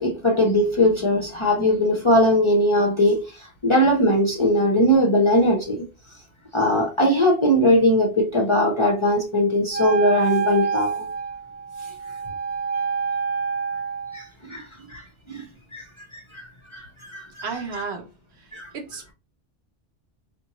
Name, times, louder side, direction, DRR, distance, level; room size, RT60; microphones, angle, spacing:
voice 1, 0.0-3.2 3.6-5.8 6.5-11.1 14.1-15.0 15.3-15.4 15.7-15.8 16.3-16.4 16.7-17.5 17.7-17.8 18.5-18.7, left 1 dB, 40° left, 0.4 m, -20 dB
Wind instrument woodwind instrument, 9.7-14.3, right 5 dB, 50° right, 0.4 m, -27 dB
voice 2, 17.4-18.1 18.7-19.1, right 4 dB, 75° right, 0.9 m, -32 dB
3.8 x 2.2 x 2.8 m
omnidirectional pair, 1.1 m